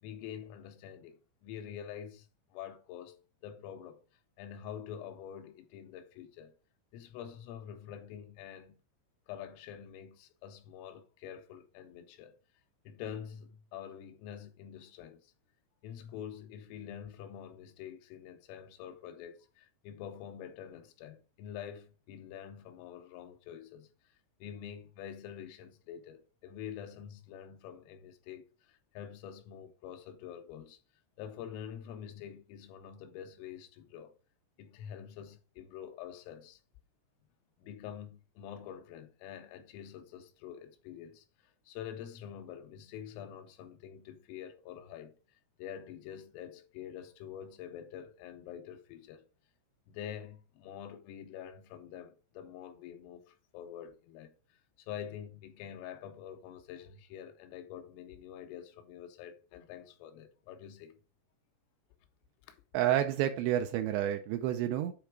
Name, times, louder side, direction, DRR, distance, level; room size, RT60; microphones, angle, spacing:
voice 1, 0.0-4.0 4.4-6.5 6.9-8.8 9.3-12.3 12.9-15.3 15.8-24.1 24.4-30.8 31.2-34.1 34.6-36.6 37.6-45.2 45.6-49.3 49.9-54.3 54.8-61.0 62.5-62.6, left 9 dB, 85° left, 3.4 m, -46 dB
voice 2, 62.7-64.9, right 12 dB, 85° right, 2.5 m, -29 dB
8.4 x 3.4 x 4.7 m
omnidirectional pair, 5.7 m